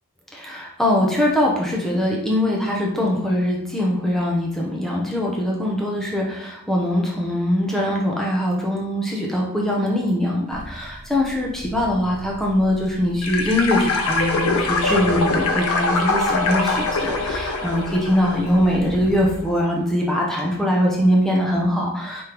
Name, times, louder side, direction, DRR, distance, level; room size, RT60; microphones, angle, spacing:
voice 1, 0.3-22.2, left 1 dB, ahead, -3 dB, 0.6 m, -22 dB
sound 1, 10.5-19.4, equal, 40° right, 1.0 m, -39 dB
sound 2, 13.2-19.0, left 3 dB, 70° left, 0.6 m, -23 dB
5.0 x 3.3 x 2.9 m, 0.77 s
head